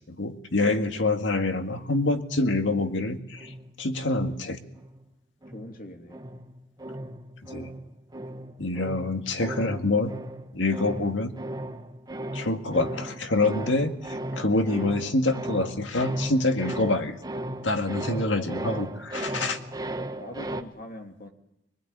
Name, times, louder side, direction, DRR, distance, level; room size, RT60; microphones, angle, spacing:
voice 1, 0.1-3.5 3.8-4.6 7.5-7.7 8.6-10.1 10.5-11.3 12.3-17.2 17.6-19.6, left 2 dB, 85° left, 6 dB, 1.9 m, -26 dB
sound 1, 2.6-5.0 5.4-20.6, right 1 dB, 20° right, 1.3 m, -37 dB
voice 2, 5.5-6.2 18.3-18.9 20.2-21.3, left 1 dB, 50° left, 4 dB, 2.8 m, -42 dB
23.5 x 21.0 x 9.0 m, 0.81 s
head